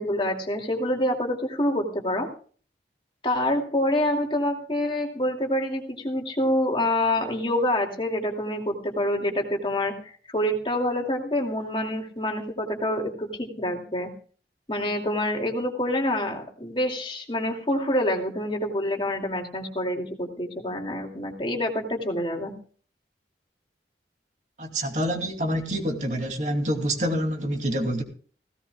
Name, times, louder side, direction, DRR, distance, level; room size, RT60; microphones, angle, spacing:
voice 1, 0.0-2.3 3.2-14.1 14.7-22.5, left 1 dB, 30° left, 2 dB, 2.5 m, -27 dB
voice 2, 24.6-28.0, equal, 40° right, 3 dB, 2.7 m, -27 dB
17.5 x 17.0 x 2.3 m, 0.42 s
head